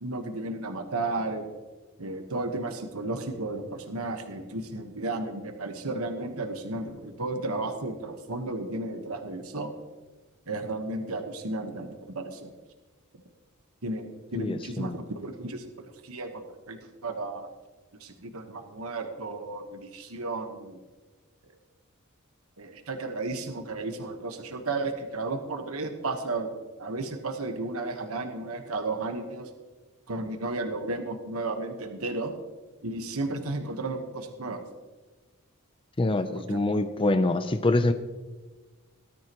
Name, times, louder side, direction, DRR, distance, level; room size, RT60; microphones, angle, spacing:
voice 1, 0.0-1.4 2.0-9.7 10.5-12.5 13.8-17.5 18.0-20.8 22.6-26.5 26.8-29.5 30.1-32.3 32.8-34.6 36.3-36.6, right 2 dB, 75° right, 6 dB, 1.2 m, -33 dB
voice 2, 14.4-15.0 36.0-37.9, left 2 dB, 25° left, 9 dB, 0.5 m, -25 dB
18.5 x 13.0 x 3.0 m, 1.2 s
head